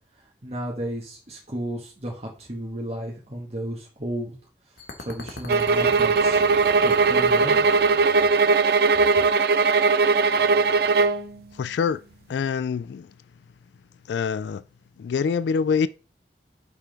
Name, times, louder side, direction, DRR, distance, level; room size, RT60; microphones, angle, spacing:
voice 1, 0.2-4.3 4.7-6.4 6.8-7.7, right 1 dB, 40° right, 1.2 m, -33 dB
sound 1, 4.8-8.6, left 2 dB, 60° left, 1.1 m, -40 dB
sound 2, 5.5-11.2, right 4 dB, 60° right, 0.4 m, -19 dB
voice 2, 11.5-12.0 12.3-13.1 14.1-14.6 15.0-15.9, left 6 dB, 75° left, 0.3 m, -25 dB
5.6 x 3.7 x 5.1 m
head